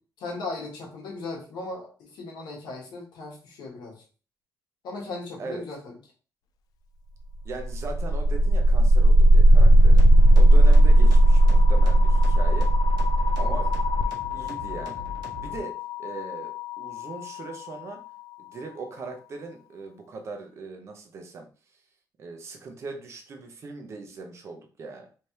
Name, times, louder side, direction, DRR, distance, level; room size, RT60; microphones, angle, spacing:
voice 1, 0.2-4.0 4.8-5.9 13.4-13.5, left 3 dB, 80° left, -2 dB, 1.4 m, -37 dB
voice 2, 7.4-10.0 10.3-12.7 13.4-13.7 14.0-15.0 15.4-15.7 16.0-18.0 18.4-21.5 22.2-25.1, right 3 dB, 40° right, 4 dB, 0.7 m, -39 dB
sound 1, 7.5-17.4, right 1 dB, 60° left, 0.4 m, -18 dB
sound 2, 9.6-15.6, left 1 dB, 75° right, 1.1 m, -40 dB
3.3 x 3.3 x 2.8 m, 0.38 s
cardioid pair, 165°, 7 cm